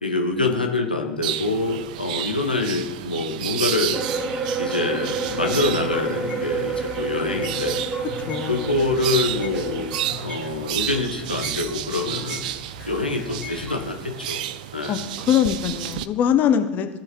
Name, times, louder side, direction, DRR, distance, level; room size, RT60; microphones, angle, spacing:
voice 1, 0.0-4.0 4.6-7.8 8.5-10.0 10.2-12.4 12.8-14.5 14.7-15.1, left 3 dB, 85° left, 3 dB, 0.8 m, -25 dB
sound 1, 1.2-16.1, right 12 dB, 60° right, 0.4 m, -32 dB
sound 2, 3.9-10.1, right 4 dB, 15° right, 1.2 m, -29 dB
sound 3, 5.2-13.7, left 4 dB, 20° left, 2.3 m, -39 dB
voice 2, 8.3-8.8 14.9-15.0 15.2-16.9, left 9 dB, 40° left, 8 dB, 0.7 m, -21 dB
16.0 x 5.7 x 3.0 m, 1.3 s
figure-of-eight pair, 80°, 5 cm